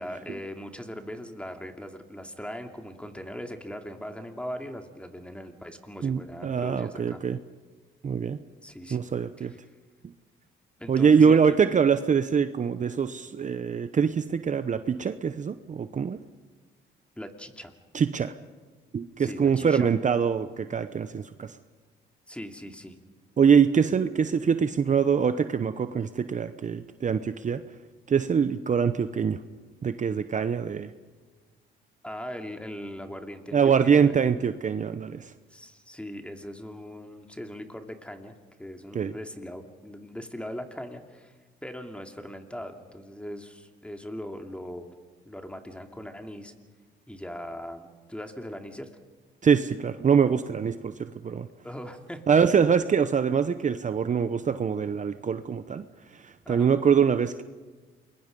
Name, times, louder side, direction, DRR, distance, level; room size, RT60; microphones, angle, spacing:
voice 1, 0.0-7.2 8.6-9.1 9.4-9.6 10.8-11.4 17.2-17.7 19.2-19.9 22.3-23.0 32.0-34.1 35.5-38.3 38.6-41.3 41.6-44.9 45.3-46.5 47.1-48.9 51.6-52.2 56.4-56.7, equal, 5° left, 5 dB, 2.6 m, -40 dB
voice 2, 6.0-7.4 8.0-8.4 8.9-9.5 10.9-16.2 17.9-18.4 18.9-21.6 23.4-27.6 28.1-29.4 29.8-30.9 33.5-35.3 38.9-39.1 49.4-51.5 52.3-55.8 56.1-57.4, right 6 dB, 40° right, 11 dB, 0.8 m, -24 dB
28.5 x 22.0 x 5.3 m, 1.4 s
cardioid pair, 90°, 20 cm